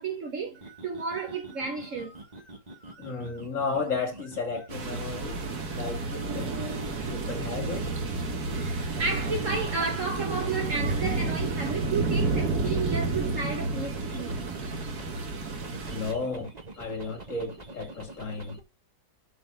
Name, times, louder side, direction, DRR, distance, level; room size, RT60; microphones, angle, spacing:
voice 1, 0.0-2.2 8.5-14.4, right 4 dB, 55° right, 1.4 m, -32 dB
sound 1, 0.5-7.7 8.8-10.4 10.7-15.2 15.5-18.6, right 2 dB, 25° right, 1.6 m, -46 dB
voice 2, 3.0-5.5 5.7-6.5 7.1-7.9 15.9-16.5 16.8-18.6, left 4 dB, 50° left, 2.6 m, -33 dB
sound 2, 4.7-16.1, right 3 dB, 70° right, 2.1 m, -30 dB
8.3 x 4.1 x 5.4 m
omnidirectional pair, 1.7 m